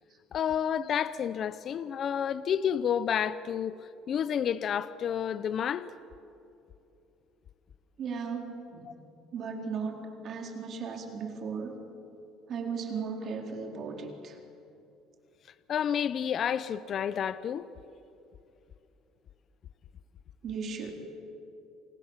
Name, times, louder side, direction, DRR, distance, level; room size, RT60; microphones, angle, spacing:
voice 1, 0.3-3.8 4.1-5.9 15.7-17.7, left 8 dB, 45° left, 0.7 m, -30 dB
voice 2, 8.0-9.0 9.3-11.8 12.5-14.4 20.4-20.9, right 5 dB, 45° right, 4.1 m, -36 dB
28.5 x 28.0 x 7.4 m
cardioid pair, 135°, 0 cm